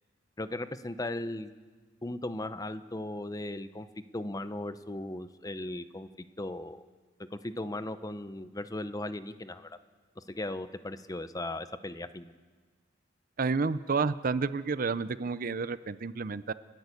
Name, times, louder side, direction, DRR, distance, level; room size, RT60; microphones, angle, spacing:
voice 1, 0.4-1.5 2.0-3.9 4.1-6.8 7.3-9.8 10.2-12.4, left 1 dB, 20° left, 12 dB, 0.7 m, -37 dB
voice 2, 13.4-16.5, right 4 dB, 50° right, 15 dB, 0.5 m, -30 dB
30.0 x 10.5 x 8.3 m, 1.5 s
head